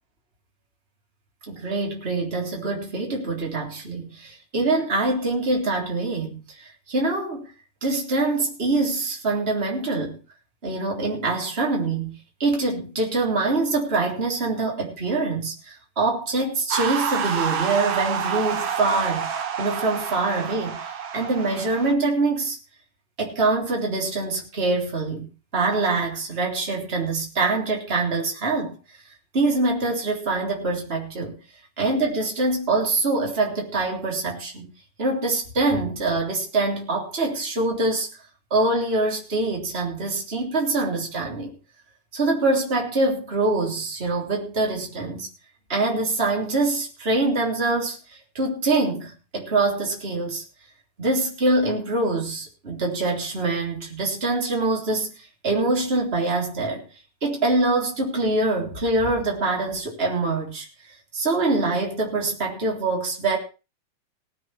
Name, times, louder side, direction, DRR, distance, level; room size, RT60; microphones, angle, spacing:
voice 1, 1.5-7.5 7.8-10.2 10.6-19.3 19.6-22.6 23.2-28.8 29.3-31.4 31.8-34.7 35.0-38.1 38.5-41.5 42.1-45.3 45.7-48.0 48.3-50.4 51.0-56.9 57.2-60.7 61.1-63.4, right 2 dB, 20° right, 0 dB, 3.7 m, -24 dB
sound 1, 16.7-21.9, right 7 dB, 55° right, 2.3 m, -28 dB
18.5 x 7.3 x 5.9 m, 0.33 s
omnidirectional pair, 3.4 m